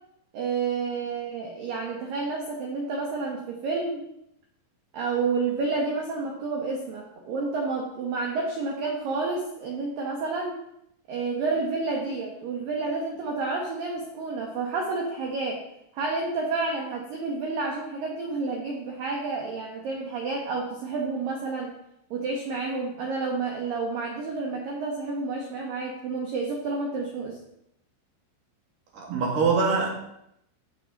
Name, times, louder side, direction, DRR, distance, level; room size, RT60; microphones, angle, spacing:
voice 1, 0.3-4.0 4.9-10.6 11.1-15.6 15.9-21.7 22.1-27.4, right 3 dB, 70° right, 0 dB, 2.1 m, -30 dB
voice 2, 28.9-29.9, right 4 dB, 50° right, -2 dB, 3.4 m, -23 dB
14.5 x 6.6 x 4.0 m, 0.79 s
omnidirectional pair, 5.6 m